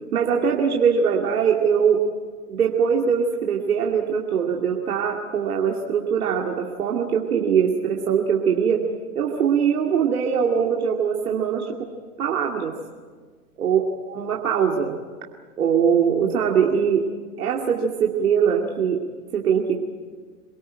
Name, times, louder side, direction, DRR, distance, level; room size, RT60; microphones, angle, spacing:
voice 1, 0.1-2.0 2.5-8.8 9.1-11.7 12.2-12.7 13.6-13.8 14.1-15.0 15.6-17.0 17.4-19.0 19.3-19.8, right 7 dB, 75° right, 0 dB, 2.5 m, -22 dB
26.5 x 19.0 x 9.0 m, 1.5 s
hypercardioid pair, 105°, 44 cm